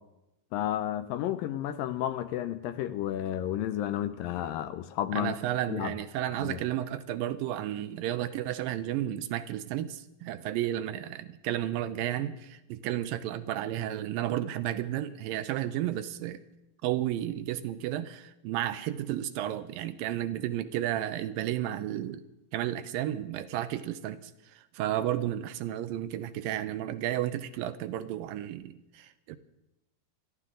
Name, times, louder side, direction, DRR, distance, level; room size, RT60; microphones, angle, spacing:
voice 1, 0.5-5.3 5.7-5.9 6.4-6.6, left 12 dB, 80° left, 11 dB, 2.3 m, -32 dB
voice 2, 5.1-16.4 16.8-22.2 22.5-29.4, right 12 dB, 80° right, 12 dB, 2.3 m, -32 dB
28.5 x 11.5 x 3.8 m, 0.91 s
omnidirectional pair, 4.3 m